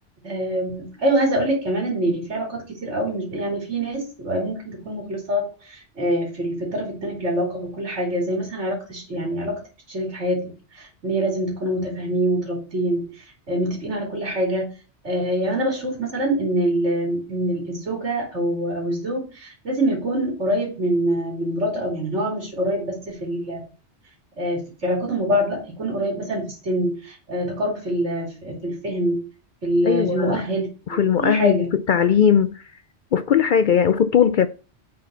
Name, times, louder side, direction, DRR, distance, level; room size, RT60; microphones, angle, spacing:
voice 1, 0.2-9.6 9.9-14.7 15.0-23.6 24.4-29.2 29.6-31.7, right 1 dB, 85° right, 3.3 m, -25 dB
voice 2, 29.9-30.4 30.9-31.6 31.9-32.6 33.1-34.5, left 8 dB, 60° left, 0.5 m, -18 dB
7.7 x 4.2 x 6.8 m
omnidirectional pair, 1.2 m